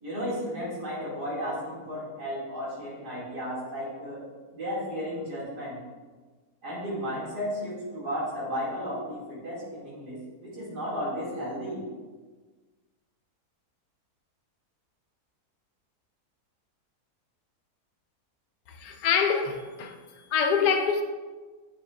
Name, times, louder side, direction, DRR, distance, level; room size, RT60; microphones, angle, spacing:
voice 1, 0.0-4.3 4.5-5.8 6.6-11.8, equal, 80° right, 3.1 m, -34 dB
voice 2, 18.7-20.0 20.3-21.0, left 6 dB, 90° left, 1.3 m, -25 dB
8.7 x 7.0 x 2.5 m
omnidirectional pair, 1.7 m